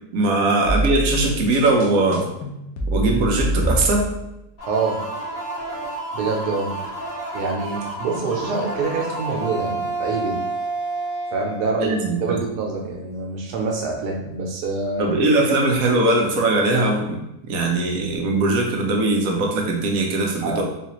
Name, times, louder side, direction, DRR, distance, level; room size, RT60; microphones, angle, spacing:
voice 1, 0.1-2.3 2.9-4.1 11.8-12.4 15.0-20.6, right 2 dB, 70° right, 1 dB, 1.1 m, -20 dB
sound 1, 0.6-4.3, right 1 dB, 70° left, 1.0 m, -25 dB
sound 2, 4.6-12.2, right 2 dB, 45° left, 1.0 m, -30 dB
voice 2, 4.7-5.0 6.1-6.7 7.3-10.4 11.3-11.9 12.2-15.1 15.9-16.0 20.4-20.6, right 4 dB, 85° right, 0 dB, 1.3 m, -26 dB
4.0 x 2.4 x 2.9 m, 0.86 s
omnidirectional pair, 1.7 m